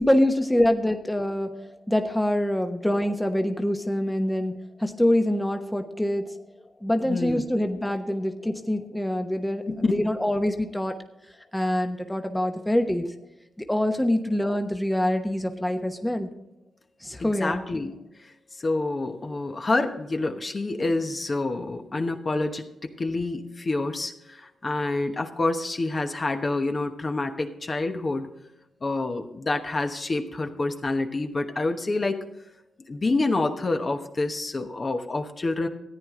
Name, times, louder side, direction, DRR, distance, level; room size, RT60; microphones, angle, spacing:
voice 1, 0.0-1.5 1.9-6.3 6.8-10.9 11.5-13.1 13.6-16.3 17.0-17.6, left 1 dB, 10° left, 6 dB, 1.0 m, -25 dB
voice 2, 7.0-7.5 9.7-10.0 17.2-18.0 18.6-28.3 28.8-32.2 32.9-35.7, left 2 dB, 40° left, 5 dB, 1.1 m, -27 dB
14.0 x 9.2 x 3.7 m, 0.88 s
cardioid pair, 65°, 0 cm